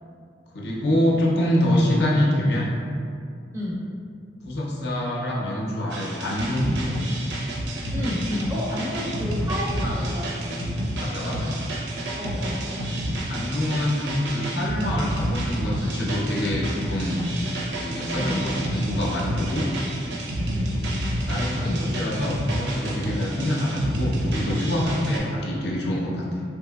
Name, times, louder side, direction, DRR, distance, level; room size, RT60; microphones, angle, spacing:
voice 1, 0.5-2.7 4.4-7.1 11.0-11.6 13.3-17.2 17.8-19.7 21.2-26.4, left 1 dB, 60° left, -4 dB, 0.5 m, -25 dB
voice 2, 3.5-3.9 7.9-10.6 12.2-12.7 18.2-18.5 20.5-20.8, left 1 dB, 15° right, -6 dB, 0.4 m, -30 dB
sound 1, 5.9-25.2, equal, 70° right, 0.5 m, -29 dB
3.2 x 2.8 x 2.2 m, 2.3 s
head